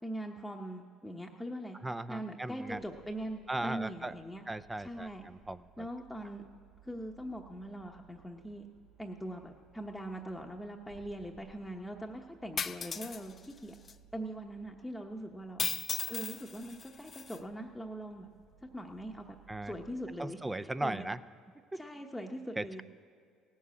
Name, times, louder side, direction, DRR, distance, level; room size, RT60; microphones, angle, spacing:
voice 1, 0.0-1.8 2.1-4.4 4.8-5.3 5.8-6.4 6.8-8.7 9.0-13.7 14.1-15.7 16.1-18.3 18.7-19.3 19.6-21.1 21.7-22.8, right 1 dB, 5° left, 1 dB, 1.0 m, -42 dB
voice 2, 1.8-2.8 3.5-4.1 4.5-5.9 19.5-19.7 20.2-21.2 21.7-21.8 22.6-22.8, right 2 dB, 10° right, 14 dB, 0.5 m, -37 dB
sound 1, 2.7-20.0, right 7 dB, 75° right, 2.9 m, -62 dB
sound 2, 12.6-13.2 13.9-14.0 15.6-17.4, left 6 dB, 35° left, 0.6 m, -36 dB
17.0 x 7.3 x 8.4 m, 2.2 s
supercardioid pair, 85°, 0 cm